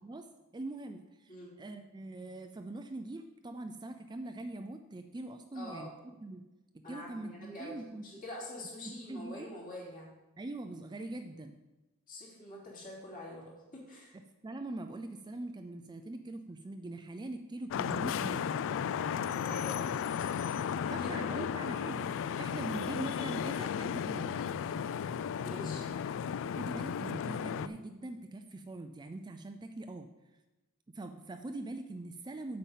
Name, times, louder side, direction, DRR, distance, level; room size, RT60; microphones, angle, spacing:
voice 1, 0.0-5.9 6.2-6.5 6.9-8.1 8.8-9.5 10.4-11.6 14.4-18.5 20.9-24.3 26.4-30.1 30.9-32.6, right 2 dB, 20° right, 7 dB, 0.4 m, -42 dB
voice 2, 5.5-5.9 6.8-7.7 8.0-10.1 12.1-14.1 19.3-19.8 20.8-21.5 25.4-25.9, left 1 dB, 40° left, -4 dB, 3.1 m, -45 dB
Vehicle horn car horn honking / Traffic noise roadway noise, 17.7-27.7, left 7 dB, 60° left, 0.3 m, -34 dB
8.2 x 5.2 x 7.4 m, 1.1 s
head